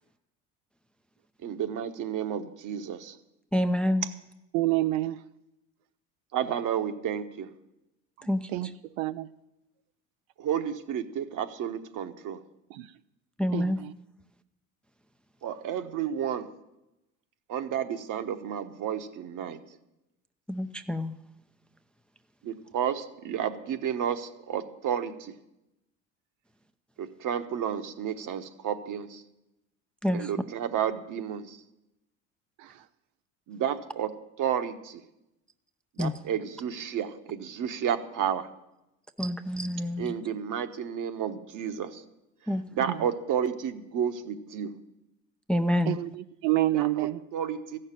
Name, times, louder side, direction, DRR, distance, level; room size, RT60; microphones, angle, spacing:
voice 1, 1.4-3.1 6.3-7.5 10.4-12.4 15.4-16.5 17.5-19.6 22.4-25.3 27.0-29.2 30.1-31.6 33.5-34.1 34.4-35.0 36.0-38.5 40.0-42.0 42.7-44.7 46.7-47.8, right 9 dB, 50° right, 9 dB, 1.2 m, -31 dB
voice 2, 3.5-4.1 8.2-8.7 13.4-13.8 20.5-21.2 30.0-30.3 36.0-36.1 39.2-40.1 42.5-42.6 45.5-46.0, left 1 dB, 5° left, 9 dB, 0.5 m, -27 dB
voice 3, 4.5-5.2 8.5-8.7 9.0-9.3 12.7-12.9 13.5-13.7 32.6-32.7 45.9-47.2, right 16 dB, 75° right, 11 dB, 0.6 m, -27 dB
15.0 x 6.6 x 9.0 m, 0.91 s
hypercardioid pair, 85°, 40 cm